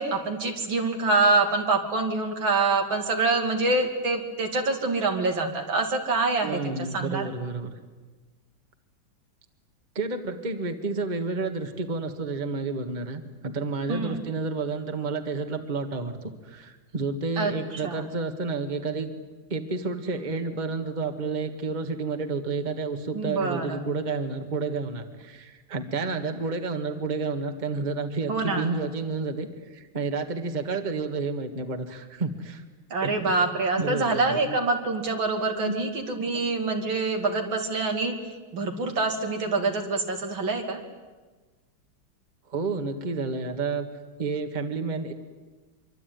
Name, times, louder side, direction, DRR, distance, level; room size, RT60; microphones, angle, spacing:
voice 1, 0.0-7.2 13.9-14.2 17.4-18.0 23.1-23.8 28.3-28.7 32.9-38.2 38.5-40.8, right 3 dB, 75° right, 3 dB, 3.5 m, -26 dB
voice 2, 6.4-7.7 10.0-16.2 16.4-19.1 19.5-32.6 33.0-33.4 33.8-34.4 35.6-35.9 36.3-36.4 42.5-43.9 44.2-45.1, right 4 dB, 25° right, 6 dB, 1.7 m, -30 dB
25.0 x 24.5 x 9.4 m, 1.3 s
omnidirectional pair, 2.2 m